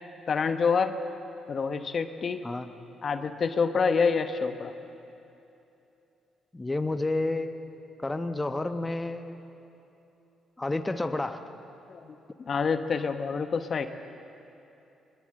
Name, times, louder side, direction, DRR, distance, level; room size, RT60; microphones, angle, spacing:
voice 1, 0.3-0.9 1.5-2.4 3.0-4.7 11.9-12.0 12.5-13.9, left 5 dB, 45° left, 8 dB, 1.1 m, -27 dB
voice 2, 6.5-7.7 8.0-9.4 10.6-11.4, left 2 dB, 15° left, 7 dB, 1.1 m, -30 dB
22.0 x 21.0 x 7.7 m, 2.9 s
cardioid pair, 90°, 0 cm